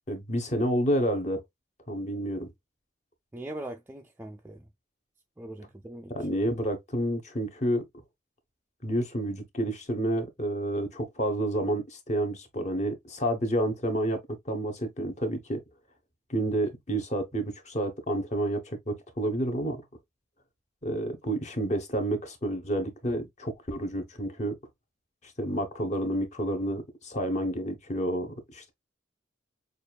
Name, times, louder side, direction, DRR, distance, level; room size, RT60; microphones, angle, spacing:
voice 1, 0.1-1.4 1.9-2.5 6.1-7.8 8.8-14.2 14.5-15.6 16.3-19.8 20.8-24.6 25.4-28.7, right 1 dB, 35° left, 1.1 m, -29 dB
voice 2, 3.3-4.6 5.4-6.3, right 1 dB, 10° right, 0.4 m, -41 dB
6.5 x 2.5 x 2.3 m
head